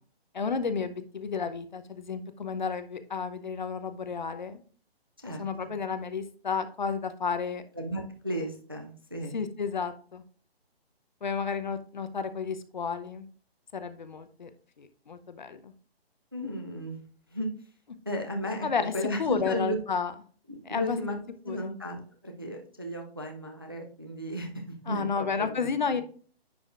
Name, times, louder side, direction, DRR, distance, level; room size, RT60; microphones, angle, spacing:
voice 1, 0.3-4.6 5.4-7.6 9.3-10.2 11.2-13.3 13.7-14.5 14.8-15.7 18.6-18.9 19.2-20.1 20.7-21.0 21.5-21.7 24.9-26.0, left 5 dB, 45° left, 11 dB, 0.7 m, -32 dB
voice 2, 5.2-5.7 7.8-9.4 16.3-17.0 17.3-17.5 18.1-18.7 18.9-19.8 20.5-21.2 21.4-22.0 22.2-26.0, equal, 25° right, 3 dB, 0.4 m, -35 dB
10.0 x 4.9 x 2.4 m, 0.42 s
hypercardioid pair, 170°, 32 cm